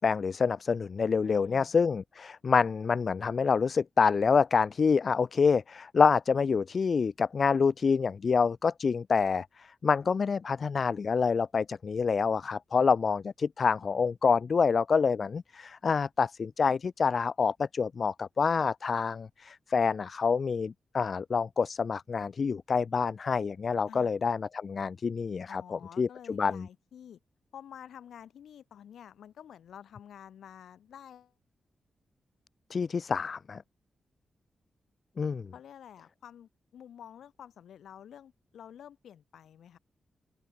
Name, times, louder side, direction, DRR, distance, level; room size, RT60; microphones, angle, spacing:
voice 1, 0.0-26.7 32.7-33.6 35.2-35.5, left 5 dB, 55° left, 0.4 m, -27 dB
voice 2, 1.2-1.7 23.9-24.1 25.5-27.2 27.5-31.3 35.5-39.8, left 9 dB, 85° left, 5.8 m, -49 dB
open air
cardioid pair, 75°, 0 cm